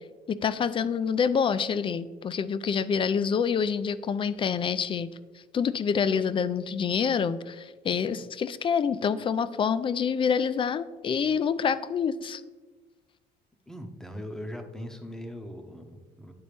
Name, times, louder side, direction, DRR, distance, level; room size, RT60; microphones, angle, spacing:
voice 1, 0.3-5.1 5.5-12.4, left 6 dB, 30° left, 15 dB, 0.3 m, -27 dB
voice 2, 13.7-16.3, equal, 5° left, 5 dB, 0.8 m, -40 dB
10.5 x 4.1 x 3.4 m, 1.3 s
cardioid pair, 110°, 17 cm